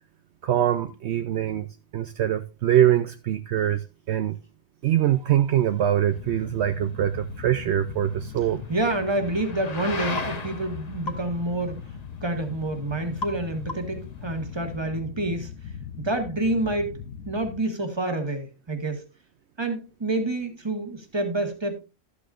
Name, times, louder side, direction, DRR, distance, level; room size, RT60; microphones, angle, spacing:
voice 1, 0.4-1.7 1.9-4.4 4.8-8.6, right 11 dB, 70° right, 0.9 m, -23 dB
sound 1, 4.8-14.8, left 3 dB, 35° left, 1.0 m, -40 dB
sound 2, 6.1-17.6, left 8 dB, 85° left, 1.2 m, -40 dB
voice 2, 8.7-12.0 12.2-15.5 16.0-17.0 17.3-19.1 19.6-21.8, right 2 dB, 20° right, 1.6 m, -28 dB
sound 3, 10.2-10.4 11.1-11.3 13.2-13.4 13.7-14.0, left 2 dB, 55° left, 1.8 m, -34 dB
13.0 x 8.4 x 2.5 m
omnidirectional pair, 1.3 m